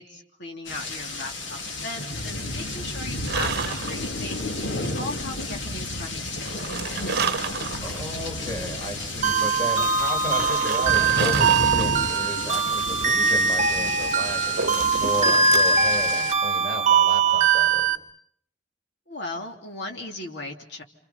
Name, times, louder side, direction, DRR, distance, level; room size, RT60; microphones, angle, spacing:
voice 1, 0.0-4.5 4.8-7.0 19.1-20.8, left 2 dB, 65° left, 2 dB, 3.2 m, -37 dB
sound 1, 0.6-16.3, left 2 dB, 85° left, 2.5 m, -32 dB
sound 2, 3.2-4.4 6.5-8.0 8.6-8.7 10.3-12.0 14.1-15.8, right 5 dB, 60° right, 1.0 m, -30 dB
voice 2, 7.8-17.9, equal, 20° left, 2 dB, 5.3 m, -34 dB
sound 3, 9.2-18.0, right 5 dB, 40° right, 1.1 m, -22 dB
29.5 x 27.0 x 5.8 m, 0.65 s
head